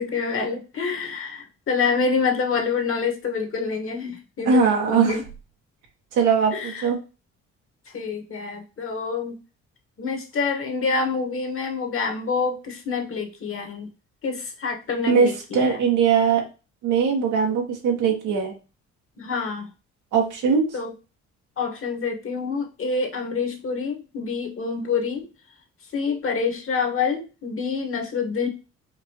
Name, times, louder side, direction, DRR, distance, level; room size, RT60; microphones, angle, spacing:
voice 1, 0.0-5.2 6.5-6.9 7.9-9.3 10.0-13.9 14.2-15.8 19.2-19.7 20.7-20.9 21.6-25.3 25.9-28.5, left 5 dB, 45° left, 4 dB, 1.3 m, -27 dB
voice 2, 4.5-5.2 6.1-7.0 15.1-16.4 16.8-18.5 20.1-20.6, right 6 dB, 85° right, 2 dB, 1.3 m, -20 dB
5.2 x 2.6 x 2.8 m, 0.31 s
cardioid pair, 90°, 30 cm